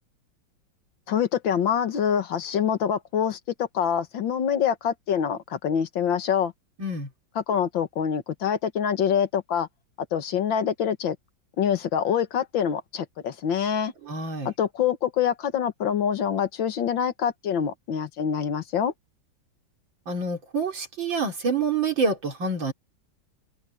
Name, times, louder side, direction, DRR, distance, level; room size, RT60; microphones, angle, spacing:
voice 1, 1.1-6.5 7.4-9.7 10.1-11.2 11.6-13.9 14.5-18.9, left 8 dB, 85° left, 2.1 m, -25 dB
voice 2, 6.8-7.1 14.0-14.5 20.1-22.7, right 4 dB, 80° right, 4.6 m, -27 dB
omnidirectional pair, 2.1 m